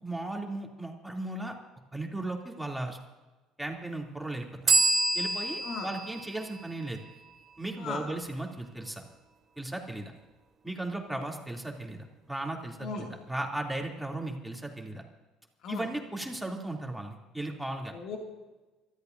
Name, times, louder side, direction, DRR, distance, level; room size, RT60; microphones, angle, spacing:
voice 1, 0.0-1.5 1.9-3.0 3.6-4.5 5.1-7.0 7.6-9.0 9.6-10.1 10.6-15.0 15.7-17.9, right 2 dB, 5° right, 0 dB, 2.9 m, -36 dB
sound 1, 4.7-8.2, right 3 dB, 35° right, 3.1 m, -29 dB
voice 2, 5.6-5.9 7.8-8.0 11.1-11.2 12.8-13.1 15.6-15.9 17.9-18.2, left 4 dB, 60° left, 1 dB, 2.4 m, -37 dB
29.5 x 14.0 x 2.7 m, 1.2 s
hypercardioid pair, 65°, 0 cm